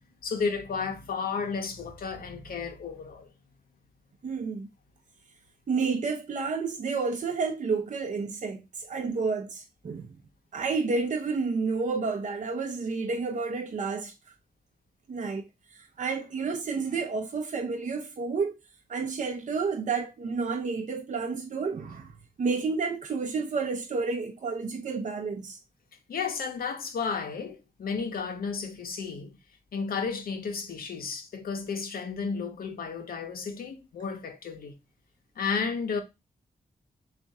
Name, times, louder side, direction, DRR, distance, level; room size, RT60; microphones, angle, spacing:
voice 1, 0.2-3.3 26.1-29.4 29.7-34.7 35.4-36.0, left 5 dB, 85° left, 0.7 m, -33 dB
voice 2, 4.2-4.7 5.7-10.2 10.5-14.1 15.1-18.5 18.9-22.1 22.4-25.6, right 4 dB, 55° right, 0.6 m, -30 dB
3.5 x 2.5 x 4.0 m
cardioid pair, 65°, 15 cm